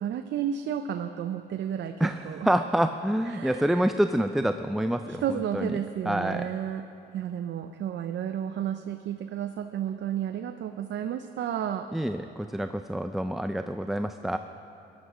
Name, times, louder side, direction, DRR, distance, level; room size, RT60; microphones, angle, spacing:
voice 1, 0.0-2.5 3.3-3.9 5.1-6.9 7.1-11.9, right 9 dB, 65° right, 8 dB, 0.6 m, -32 dB
voice 2, 2.0-5.8 6.1-6.5 11.9-14.4, right 1 dB, ahead, 9 dB, 0.4 m, -27 dB
17.0 x 11.5 x 5.0 m, 2.8 s
cardioid pair, 90°, 20 cm